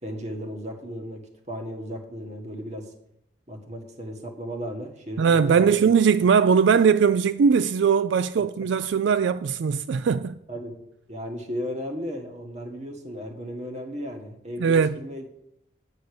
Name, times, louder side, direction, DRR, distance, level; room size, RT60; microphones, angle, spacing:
voice 1, 0.0-2.9 3.5-5.8 8.4-8.5 10.5-10.8 11.1-15.2, equal, 35° right, 1.5 m, -35 dB
voice 2, 5.2-10.4 14.6-15.0, right 6 dB, 80° right, 0.3 m, -20 dB
9.6 x 6.5 x 6.7 m
head